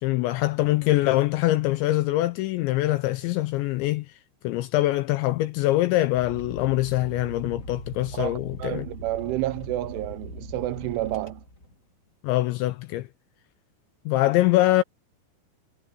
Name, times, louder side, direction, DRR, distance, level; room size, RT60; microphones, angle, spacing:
voice 1, 0.0-4.2 4.4-8.9 12.2-13.1 14.1-14.8, left 17 dB, 90° left, 2.6 m, -23 dB
sound 1, 6.2-11.7, equal, 25° left, 1.9 m, -40 dB
voice 2, 8.1-11.4, right 16 dB, 80° right, 3.0 m, -30 dB
omnidirectional pair, 5.9 m